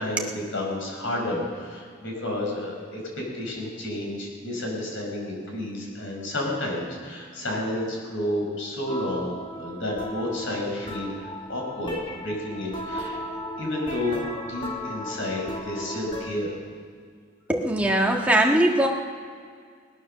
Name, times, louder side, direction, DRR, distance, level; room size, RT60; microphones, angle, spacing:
voice 1, 0.0-13.2 13.6-16.6, left 1 dB, 75° left, -1 dB, 5.2 m, -31 dB
sound 1, 8.9-16.3, left 1 dB, 25° left, 1.5 m, -36 dB
voice 2, 17.5-18.9, right 1 dB, 5° right, 0 dB, 1.5 m, -21 dB
20.0 x 9.6 x 6.6 m, 2.1 s
head